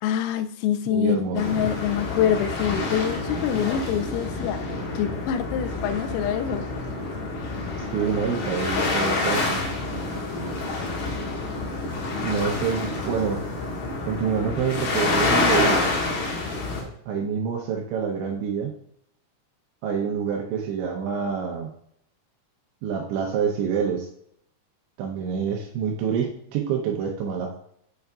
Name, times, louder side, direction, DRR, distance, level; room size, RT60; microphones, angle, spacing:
voice 1, 0.0-6.7 12.1-12.5, left 9 dB, 90° left, 10 dB, 3.2 m, -26 dB
voice 2, 0.9-1.4 7.9-9.6 12.2-13.4 14.0-16.0 17.1-18.7 19.8-21.7 22.8-24.1 25.0-27.6, right 7 dB, 80° right, 0 dB, 2.8 m, -27 dB
sound 1, 1.3-16.8, left 3 dB, 65° left, 3.6 m, -27 dB
8.4 x 6.6 x 2.4 m, 0.69 s
omnidirectional pair, 5.9 m